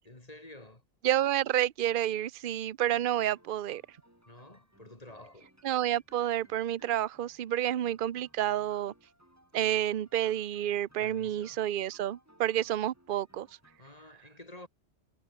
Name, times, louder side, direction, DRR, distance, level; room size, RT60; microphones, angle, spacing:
voice 1, 0.0-0.8 4.3-5.5 11.0-11.6 13.8-14.7, left 1 dB, 30° left, 3.4 m, -50 dB
voice 2, 1.0-3.8 5.6-8.9 9.5-13.5, right 12 dB, 50° right, 0.8 m, -29 dB
sound 1, 3.2-13.8, equal, 10° right, 5.4 m, -64 dB
omnidirectional pair, 1.2 m